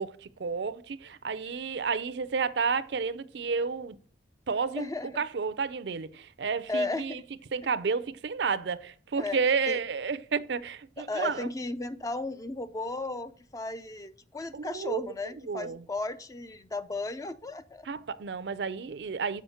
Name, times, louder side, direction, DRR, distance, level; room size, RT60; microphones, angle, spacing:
voice 1, 0.0-4.0 4.5-4.9 5.2-7.2 7.5-11.5 14.5-15.1 15.5-15.8 17.9-19.4, right 5 dB, 65° right, 0.5 m, -31 dB
voice 2, 4.8-5.1 6.7-7.2 9.2-9.4 9.7-9.8 11.0-17.9, left 2 dB, 20° left, 0.4 m, -35 dB
7.1 x 5.0 x 5.6 m
head